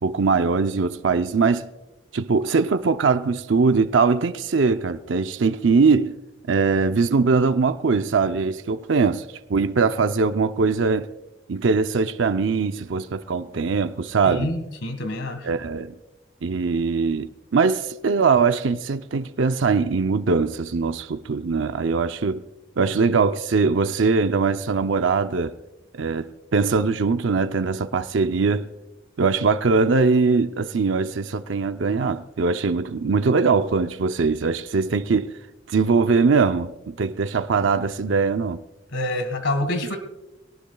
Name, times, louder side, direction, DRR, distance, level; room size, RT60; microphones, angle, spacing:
voice 1, 0.0-1.7 2.1-6.1 6.5-11.1 11.5-14.5 15.4-15.9 16.4-22.4 22.8-25.5 25.9-28.7 29.2-35.3 35.7-38.6, right 4 dB, 80° right, 0.6 m, -21 dB
voice 2, 14.3-15.4 38.9-40.0, left 1 dB, 80° left, 1.7 m, -26 dB
23.0 x 18.5 x 2.3 m
head